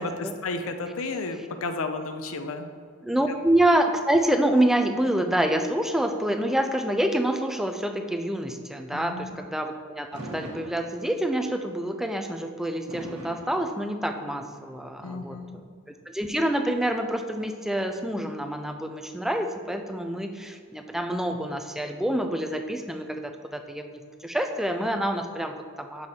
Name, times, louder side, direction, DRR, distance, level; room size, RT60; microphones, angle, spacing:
voice 1, 0.0-2.7 8.9-9.4 15.0-15.6, left 3 dB, 65° left, 7 dB, 0.6 m, -32 dB
voice 2, 3.0-15.7 16.1-23.8 24.2-26.1, right 1 dB, ahead, 5 dB, 0.3 m, -27 dB
Fireworks, 10.1-11.4 12.9-14.4, right 1 dB, 85° right, 1.1 m, -41 dB
6.1 x 4.9 x 4.2 m, 2.1 s
head